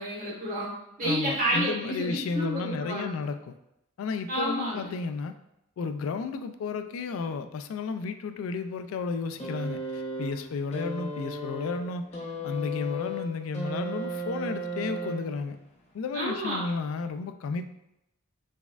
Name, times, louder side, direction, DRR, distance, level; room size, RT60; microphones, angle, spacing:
voice 1, 0.0-3.1 4.3-5.0 16.1-16.6, right 1 dB, 40° right, -6 dB, 1.3 m, -30 dB
voice 2, 1.0-3.5 4.0-5.3 5.8-12.0 12.4-15.6 15.9-17.7, left 4 dB, 80° left, 9 dB, 0.3 m, -32 dB
sound 1, 9.4-15.6 16.6-16.7, right 1 dB, 35° left, 0.7 m, -35 dB
4.1 x 3.4 x 2.3 m, 0.86 s
head